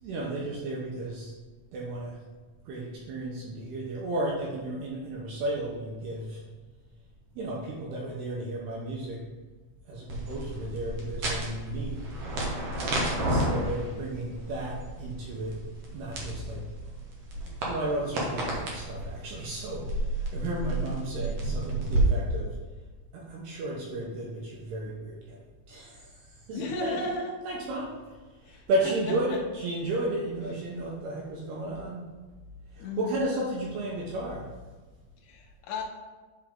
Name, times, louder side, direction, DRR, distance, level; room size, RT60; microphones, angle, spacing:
voice 1, 0.0-1.3 1.7-2.2 2.7-6.4 7.4-9.2 9.9-12.1 13.2-15.6 15.9-16.7 17.7-22.6 23.1-25.4 25.7-27.0 27.5-32.1 32.7-34.5, right 1 dB, 70° right, -3 dB, 2.8 m, -33 dB
sound 1, 10.1-22.0, right 1 dB, 90° right, 1.3 m, -32 dB
voice 2, 20.6-21.1 26.5-27.3 28.4-29.4 32.8-33.2 35.2-35.8, left 2 dB, 85° left, -1 dB, 1.8 m, -35 dB
10.5 x 4.6 x 3.7 m, 1.3 s
omnidirectional pair, 5.2 m